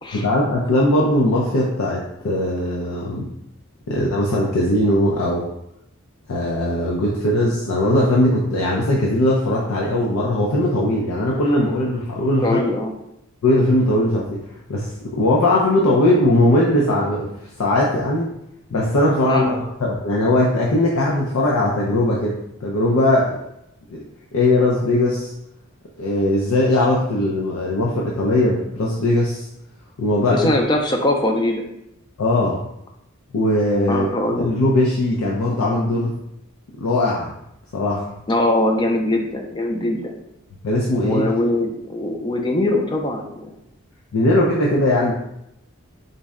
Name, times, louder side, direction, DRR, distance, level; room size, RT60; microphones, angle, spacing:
voice 1, 0.1-3.3 3.9-5.5 6.3-12.6 13.4-14.4 14.7-17.3 17.6-18.3 18.7-23.4 23.9-24.0 24.3-25.3 26.0-29.5 30.0-30.5 32.2-32.6 33.3-36.1 36.8-37.3 37.7-38.2 40.6-41.2 44.1-45.1, left 1 dB, 85° left, -3 dB, 0.5 m, -19 dB
voice 2, 12.4-12.9 19.2-19.5 30.3-31.6 33.9-34.6 38.3-40.1 41.0-43.5, left 1 dB, 20° left, 2 dB, 0.3 m, -21 dB
3.9 x 2.1 x 3.5 m, 0.80 s
head